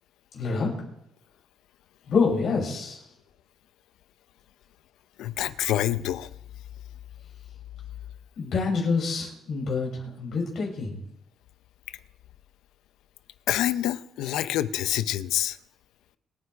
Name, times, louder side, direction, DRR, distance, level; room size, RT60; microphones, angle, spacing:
voice 1, 0.3-0.7 2.1-3.0 8.4-11.0, left 4 dB, 65° left, 6.5 m, -27 dB
voice 2, 5.2-6.3 13.5-15.6, left 12 dB, 90° left, 0.6 m, -27 dB
26.5 x 9.6 x 3.4 m
cardioid pair, 90°, 0 cm